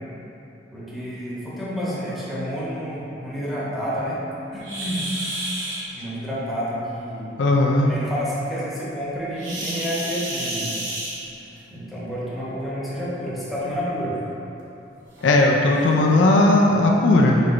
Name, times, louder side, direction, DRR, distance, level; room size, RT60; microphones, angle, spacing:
voice 1, 0.7-4.2 4.5-5.1 5.9-7.4 7.9-10.8 11.7-14.2, equal, ahead, -9 dB, 0.8 m, -29 dB
sound 1, 4.6-5.8 9.4-11.6 12.8-13.0 13.6-13.7 14.3-14.4 15.2-15.3 15.7-15.9, right 1 dB, 80° right, 0.9 m, -30 dB
voice 2, 7.4-7.9 15.2-17.4, left 2 dB, 75° left, -1 dB, 0.4 m, -17 dB
4.4 x 4.2 x 2.5 m, 2.9 s
head